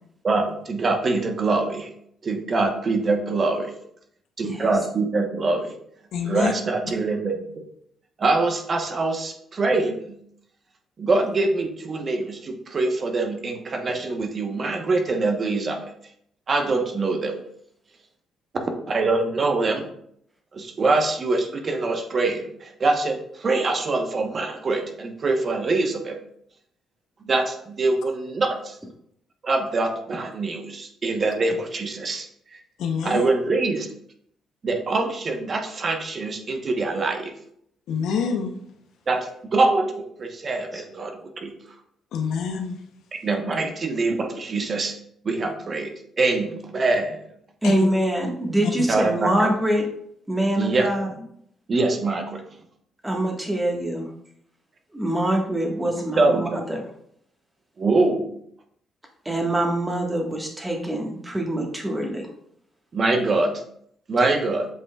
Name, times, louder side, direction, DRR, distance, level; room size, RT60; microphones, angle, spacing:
voice 1, 0.2-1.9 2.2-3.7 4.4-5.7 6.2-7.4 8.2-10.1 11.0-15.9 16.5-17.3 18.5-19.9 20.5-26.2 27.2-28.8 29.4-32.3 33.0-33.9 34.6-37.3 39.1-41.5 43.2-44.9 45.2-45.9 46.2-47.2 48.9-49.5 50.6-50.9 51.7-52.4 56.2-56.6 57.8-58.3 62.9-63.5 64.1-64.7, right 3 dB, 40° right, 4 dB, 1.0 m, -24 dB
voice 2, 6.1-6.5 32.8-33.3 37.9-38.5 42.1-42.8 47.6-47.9, left 6 dB, 80° left, 5 dB, 0.8 m, -26 dB
voice 3, 47.6-49.8 50.3-51.1 53.0-54.1 54.9-56.9 59.2-62.3, right 1 dB, 15° right, 1 dB, 1.5 m, -24 dB
7.9 x 5.3 x 2.3 m, 0.70 s
cardioid pair, 90°, 0 cm